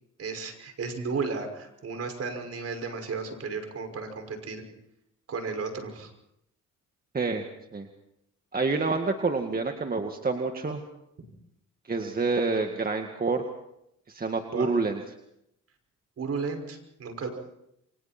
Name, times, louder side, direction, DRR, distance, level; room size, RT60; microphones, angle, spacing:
voice 1, 0.2-4.6 5.3-6.1 14.5-14.7 16.2-17.3, right 4 dB, 55° right, 5 dB, 5.8 m, -34 dB
voice 2, 8.5-10.8 11.9-13.4 14.1-15.0, right 4 dB, 30° right, 4 dB, 2.0 m, -27 dB
29.0 x 25.0 x 4.4 m, 0.79 s
cardioid pair, 90°, 30 cm